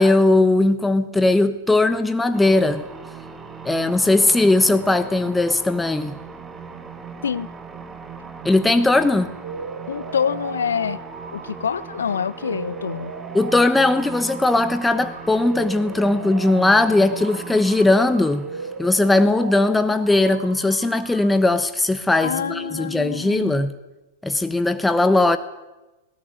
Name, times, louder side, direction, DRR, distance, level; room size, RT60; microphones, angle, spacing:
voice 1, 0.0-2.8 3.6-6.2 8.4-9.3 13.3-18.5 18.8-23.7 24.2-25.4, left 2 dB, 5° left, 11 dB, 1.1 m, -18 dB
sound 1, 2.3-20.6, right 5 dB, 15° right, 2.0 m, -39 dB
sound 2, 9.4-21.4, right 4 dB, 70° right, 2.8 m, -38 dB
voice 2, 9.9-11.0 11.3-13.1 22.2-23.6, left 7 dB, 70° left, 17 dB, 0.9 m, -26 dB
19.5 x 18.0 x 9.6 m, 1.1 s
figure-of-eight pair, 100°, 0 cm